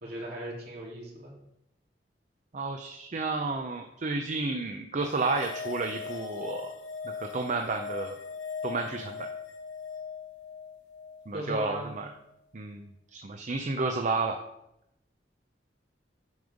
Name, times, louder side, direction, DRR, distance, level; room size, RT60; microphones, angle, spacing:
voice 1, 0.0-1.3 11.3-11.9, right 1 dB, 60° right, -4 dB, 3.1 m, -37 dB
voice 2, 2.5-6.7 7.2-8.2 8.6-9.2 11.3-12.1 12.5-14.4, right 3 dB, 45° right, 4 dB, 0.6 m, -31 dB
sound 1, 5.1-11.7, left 6 dB, 80° left, 1.3 m, -40 dB
9.4 x 5.4 x 5.2 m, 0.84 s
head